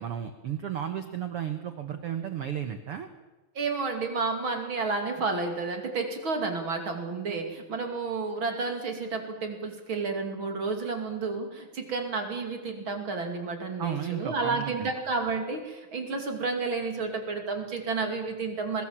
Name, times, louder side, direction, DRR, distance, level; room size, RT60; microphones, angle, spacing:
voice 1, 0.0-3.1 13.8-14.9, right 9 dB, 80° right, 8 dB, 1.3 m, -33 dB
voice 2, 3.5-18.8, right 4 dB, 35° right, 4 dB, 2.9 m, -31 dB
23.0 x 20.0 x 7.4 m, 1.2 s
omnidirectional pair, 4.4 m